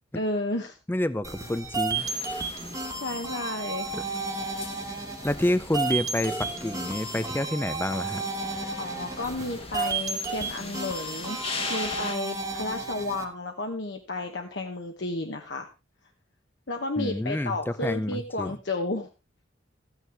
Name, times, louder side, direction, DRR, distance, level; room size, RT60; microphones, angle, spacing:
voice 1, 0.1-0.8 3.0-3.9 8.8-11.4 11.7-15.7 16.7-19.1, left 2 dB, 60° left, 3 dB, 1.1 m, -32 dB
voice 2, 0.9-2.1 3.9-4.0 5.2-8.2 17.0-18.5, left 1 dB, 10° left, 15 dB, 0.5 m, -28 dB
sound 1, 1.2-13.2, right 3 dB, 15° right, 1.2 m, -33 dB
sound 2, 1.9-12.1, left 4 dB, 30° left, 1.2 m, -40 dB
14.0 x 9.2 x 3.4 m, 0.28 s
head